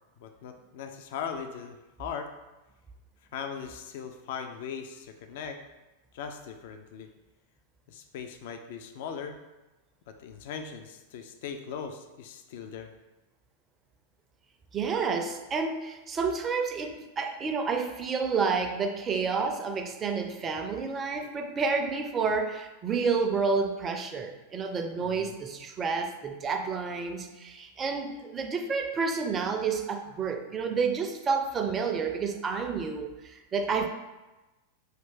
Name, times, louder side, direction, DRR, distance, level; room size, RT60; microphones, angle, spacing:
voice 1, 0.2-2.3 3.3-5.6 6.1-7.1 7.9-9.4 10.1-12.9 25.0-25.4, left 7 dB, 55° left, 6 dB, 0.4 m, -39 dB
voice 2, 14.7-33.9, right 5 dB, 25° right, 5 dB, 0.5 m, -30 dB
5.6 x 2.6 x 3.5 m, 1.1 s
figure-of-eight pair, 90°, 0 cm